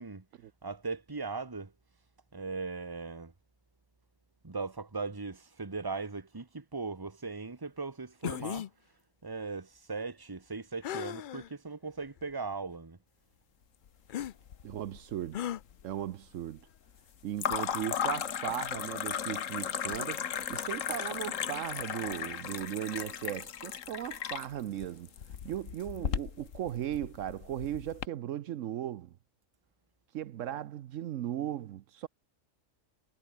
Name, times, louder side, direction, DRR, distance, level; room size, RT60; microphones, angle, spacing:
voice 1, 0.6-1.7 2.3-3.3 4.4-8.7 9.2-13.0, right 4 dB, 20° right, 1.3 m, -38 dB
sound 1, 8.2-8.7 10.8-11.5 12.2-12.3 14.1-14.3 15.3-15.6, left 11 dB, 60° left, 0.5 m, -36 dB
sound 2, 14.2-15.0 15.3-15.9 17.4-28.1, left 8 dB, 80° left, 1.5 m, -36 dB
voice 2, 14.6-15.5 15.8-16.6 17.2-25.1 25.4-29.1 30.1-32.1, right 11 dB, 75° right, 1.0 m, -37 dB
omnidirectional pair, 1.3 m